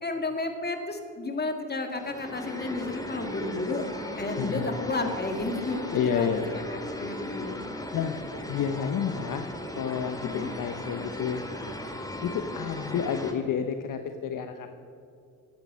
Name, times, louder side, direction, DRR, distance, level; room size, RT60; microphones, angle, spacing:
voice 1, 0.0-3.9 4.2-6.3 6.5-7.6 10.2-10.5, left 2 dB, 25° left, 5 dB, 2.1 m, -32 dB
sound 1, 1.9-13.3, left 1 dB, 10° left, 1.9 m, -37 dB
voice 2, 5.9-6.6 7.9-8.2 8.5-11.4 12.2-14.7, left 7 dB, 55° left, 7 dB, 0.9 m, -30 dB
16.0 x 8.9 x 5.6 m, 2.5 s
supercardioid pair, 70°, 38 cm